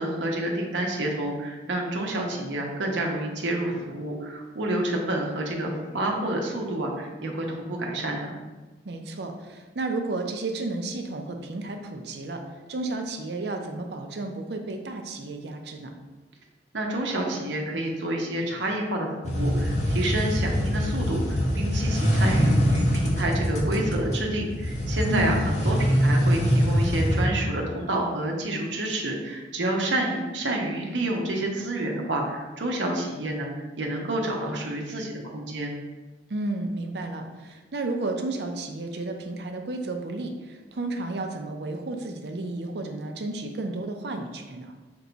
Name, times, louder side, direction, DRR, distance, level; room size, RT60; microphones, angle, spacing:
voice 1, 0.0-8.4 16.7-33.5 33.8-35.7, right 1 dB, 90° right, 1 dB, 0.8 m, -29 dB
voice 2, 8.8-12.4 12.7-16.0 25.1-25.8 36.3-44.7, right 2 dB, 65° right, 4 dB, 0.5 m, -32 dB
sound 1, 19.2-27.3, equal, 40° left, 0.7 m, -24 dB
6.0 x 2.3 x 3.9 m, 1.2 s
head